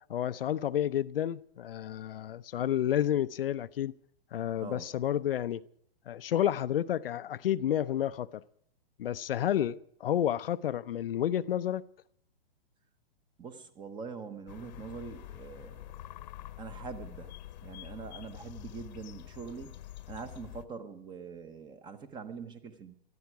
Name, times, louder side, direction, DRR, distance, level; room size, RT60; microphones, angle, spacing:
voice 1, 0.1-3.9 4.3-5.6 6.1-8.4 9.0-11.8, left 11 dB, 70° left, 0.7 m, -30 dB
voice 2, 4.6-5.0 13.4-15.9 16.6-19.8 20.1-22.9, right 5 dB, 15° right, 1.1 m, -44 dB
sound 1, 14.5-20.6, left 13 dB, 45° left, 1.0 m, -46 dB
19.0 x 13.5 x 4.7 m
hypercardioid pair, 145°, 30 cm